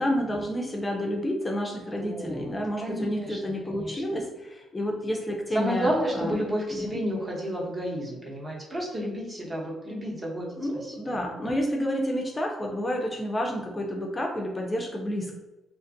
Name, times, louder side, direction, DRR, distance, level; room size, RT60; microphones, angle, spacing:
voice 1, 0.0-6.4 6.7-6.9 10.6-15.4, equal, 20° left, 0 dB, 0.4 m, -30 dB
voice 2, 2.0-4.2 5.5-11.2, equal, 35° right, -2 dB, 0.8 m, -31 dB
2.5 x 2.4 x 2.6 m, 1.1 s
cardioid pair, 90°, 0 cm